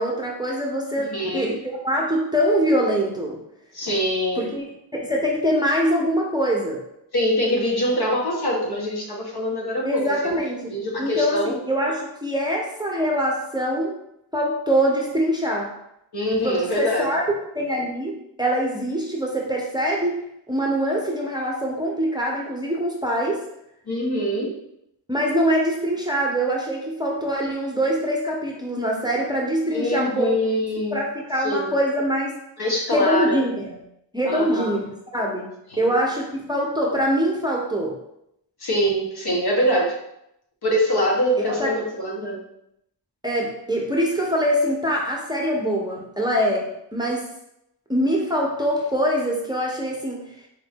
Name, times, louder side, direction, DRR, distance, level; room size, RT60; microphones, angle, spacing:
voice 1, 0.0-3.4 4.4-4.6 4.9-6.8 9.8-10.7 11.0-14.0 14.3-15.8 16.3-17.2 17.5-23.4 25.1-30.3 30.9-32.3 32.9-33.8 34.1-34.8 35.1-38.0 41.5-41.7 43.2-47.3 47.9-50.4, equal, 10° right, -2 dB, 0.7 m, -24 dB
voice 2, 1.1-1.6 3.7-4.5 7.1-10.0 10.7-11.6 16.1-17.1 23.9-24.5 29.7-31.0 31.4-31.7 32.6-33.4 34.2-34.7 35.7-35.9 38.6-39.9 40.6-42.4, equal, 60° left, -3 dB, 1.2 m, -24 dB
4.2 x 2.6 x 3.5 m, 0.78 s
wide cardioid pair, 85°, 42 cm